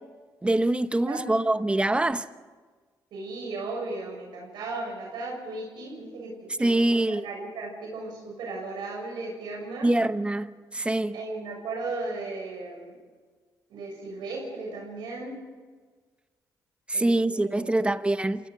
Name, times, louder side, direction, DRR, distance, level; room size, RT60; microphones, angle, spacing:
voice 1, 0.4-2.2 6.6-7.2 9.8-11.2 16.9-18.5, right 1 dB, 15° right, 1.0 m, -24 dB
voice 2, 3.1-9.9 11.1-13.0 13.7-15.4 16.9-17.9, right 3 dB, 80° right, 6.9 m, -36 dB
27.0 x 17.5 x 6.4 m
cardioid pair, 75°, 7 cm